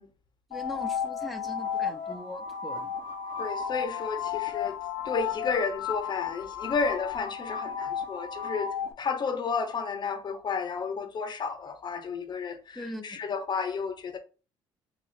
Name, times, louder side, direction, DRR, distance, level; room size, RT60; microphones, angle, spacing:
sound 1, 0.5-8.9, left 8 dB, 85° left, 0.5 m, -33 dB
voice 1, 0.5-2.9 12.7-13.2, left 1 dB, ahead, 0.6 m, -40 dB
voice 2, 3.4-4.8 5.0-14.2, left 5 dB, 40° left, 0.7 m, -32 dB
3.7 x 2.3 x 3.3 m
supercardioid pair, 75°, 11 cm